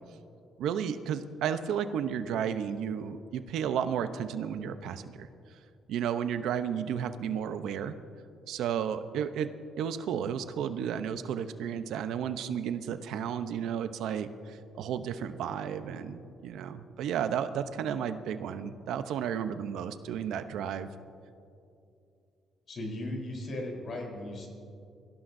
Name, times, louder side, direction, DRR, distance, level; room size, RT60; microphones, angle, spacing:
voice 1, 0.6-5.3 5.9-7.9 8.5-9.5 9.8-20.9, right 8 dB, 80° right, 10 dB, 0.7 m, -33 dB
voice 2, 22.7-24.5, left 1 dB, 50° left, 0 dB, 3.8 m, -37 dB
24.0 x 15.5 x 2.7 m, 2.6 s
cardioid pair, 110°, 0 cm